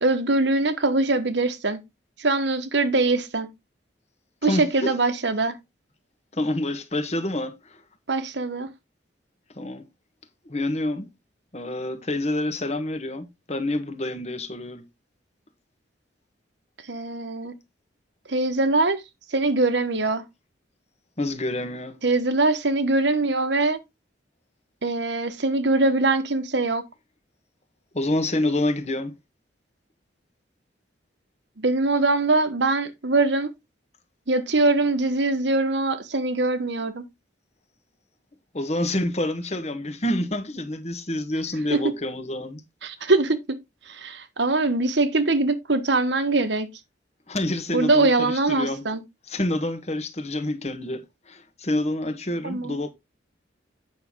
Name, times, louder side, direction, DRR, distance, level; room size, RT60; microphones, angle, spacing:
voice 1, 0.0-1.8 2.2-3.5 4.4-5.5 8.1-8.7 16.9-17.5 18.3-19.0 19.3-20.2 22.0-23.8 24.8-26.8 31.6-33.5 34.3-37.0 41.7-41.8 42.8-43.6 43.9-46.7 47.7-49.0 52.4-52.7, right 2 dB, 70° right, 1.3 m, -22 dB
voice 2, 4.4-4.9 6.3-7.8 9.6-9.8 10.4-11.1 11.5-14.8 21.2-22.0 27.9-29.1 38.5-42.6 47.3-48.8 49.3-52.9, left 1 dB, 35° left, 1.3 m, -27 dB
9.0 x 6.3 x 3.7 m
head